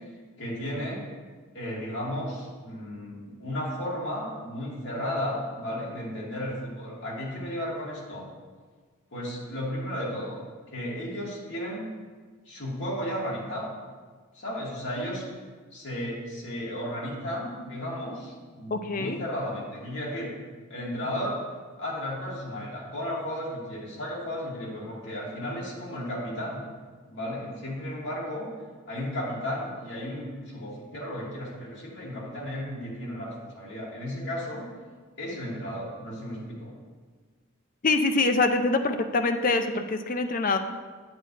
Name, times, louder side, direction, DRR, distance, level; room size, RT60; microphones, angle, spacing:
voice 1, 0.4-1.0 1.5-8.2 9.1-10.4 10.7-11.9 12.5-13.7 14.3-15.2 15.7-20.3 20.7-21.4 21.8-26.6 27.1-28.5 28.9-34.6 35.2-36.7, equal, 60° left, -6 dB, 2.6 m, -34 dB
voice 2, 18.7-19.2 37.8-40.6, left 3 dB, 40° left, 7 dB, 0.5 m, -24 dB
8.6 x 8.1 x 3.4 m, 1.5 s
head